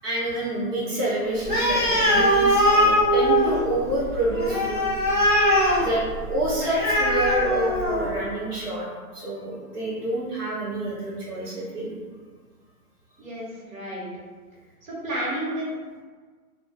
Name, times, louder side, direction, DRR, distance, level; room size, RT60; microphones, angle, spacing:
voice 1, 0.0-4.9 5.7-8.9 9.1-11.9, right 1 dB, 80° right, -7 dB, 1.1 m, -28 dB
Animal, 1.4-8.2, equal, 35° right, 0.6 m, -21 dB
voice 2, 13.2-14.1 14.8-15.7, right 1 dB, 60° right, -5 dB, 1.2 m, -31 dB
2.4 x 2.2 x 3.4 m, 1.5 s
hypercardioid pair, 170°, 46 cm